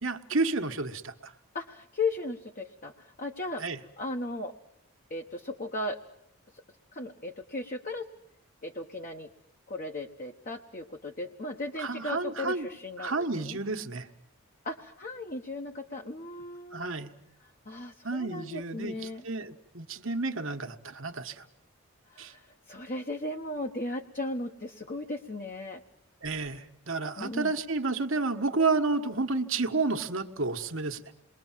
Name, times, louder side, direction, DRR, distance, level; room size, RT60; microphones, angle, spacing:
voice 1, 0.0-1.3 3.6-3.8 11.8-12.7 13.0-14.1 16.7-17.1 18.0-21.4 22.2-22.3 26.2-31.0, right 3 dB, 60° right, 7 dB, 1.4 m, -31 dB
voice 2, 1.5-3.6 4.0-4.5 5.1-6.0 6.9-8.1 8.6-9.3 9.7-13.6 14.6-16.9 17.6-19.2 22.1-25.8 27.2-27.5, left 2 dB, 40° left, 3 dB, 1.1 m, -36 dB
28.0 x 22.0 x 7.4 m, 0.78 s
head